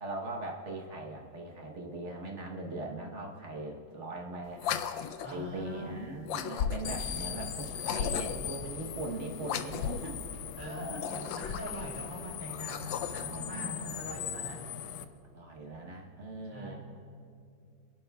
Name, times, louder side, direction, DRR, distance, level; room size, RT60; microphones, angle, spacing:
voice 1, 0.0-4.7 5.3-10.2 10.7-11.3 12.9-13.8 15.3-16.8, right 2 dB, 45° right, 1 dB, 1.2 m, -40 dB
sound 1, 4.6-5.4 6.3-7.1 7.8-8.5 9.4-10.1 10.9-11.9 12.5-13.4, left 8 dB, 85° left, 1.3 m, -35 dB
voice 2, 5.2-6.0 10.6-14.6 16.5-16.8, equal, 5° right, -4 dB, 2.8 m, -42 dB
sound 2, 6.8-15.0, left 9 dB, 70° left, 1.1 m, -40 dB
26.5 x 11.5 x 2.3 m, 2.3 s
omnidirectional pair, 2.0 m